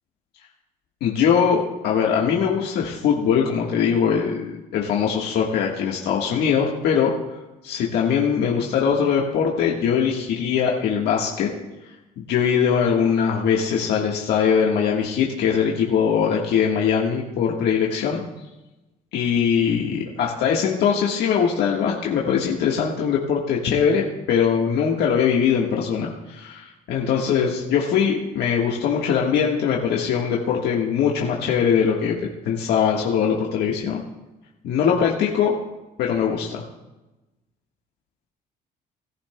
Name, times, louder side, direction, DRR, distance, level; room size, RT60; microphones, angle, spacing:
voice 1, 1.0-7.1 7.6-11.5 12.2-18.2 19.1-32.1 32.4-34.0 34.6-35.5 36.0-36.6, left 7 dB, 75° left, -2 dB, 1.4 m, -21 dB
20.0 x 11.5 x 2.2 m, 1.0 s
cardioid pair, 110°, 17 cm